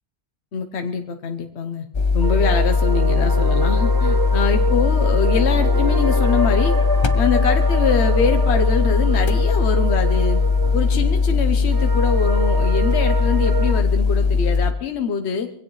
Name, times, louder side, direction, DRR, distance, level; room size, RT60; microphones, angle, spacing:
voice 1, 0.5-1.9 2.1-6.7 7.1-10.4 10.7-15.5, left 6 dB, 75° left, 7 dB, 1.2 m, -24 dB
sound 1, 1.9-14.7, left 4 dB, 30° left, 0.6 m, -19 dB
sound 2, 2.2-13.8, right 4 dB, 20° right, 0.8 m, -27 dB
23.5 x 16.5 x 3.1 m, 0.71 s
omnidirectional pair, 1.1 m